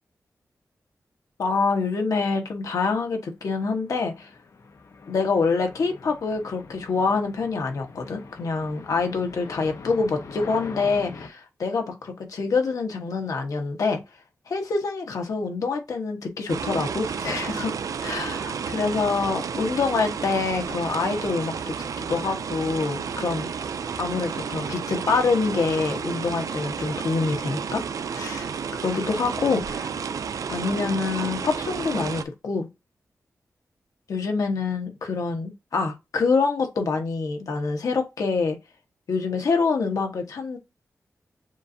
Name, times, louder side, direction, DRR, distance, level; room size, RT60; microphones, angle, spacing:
voice 1, 1.4-4.3 5.1-14.0 14.5-17.7 18.0-23.5 24.0-27.8 28.1-29.9 30.5-32.7 34.1-38.6 39.1-40.6, left 4 dB, 85° left, 1.3 m, -26 dB
sound 1, 3.5-11.3, left 4 dB, 60° left, 0.8 m, -43 dB
sound 2, 16.5-32.2, right 6 dB, 85° right, 0.4 m, -31 dB
7.1 x 2.6 x 2.7 m
wide cardioid pair, 120°, 6 cm